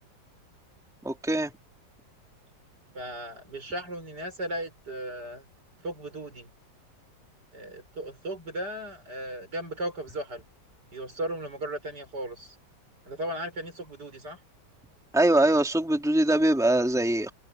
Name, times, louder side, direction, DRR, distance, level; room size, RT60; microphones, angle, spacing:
voice 1, 1.0-1.5 15.1-17.3, right 1 dB, ahead, 3.2 m, -22 dB
voice 2, 2.9-5.4 5.8-6.5 7.5-10.4 10.9-12.6 13.0-14.4, right 1 dB, 65° right, 6.7 m, -36 dB
omnidirectional pair, 2.0 m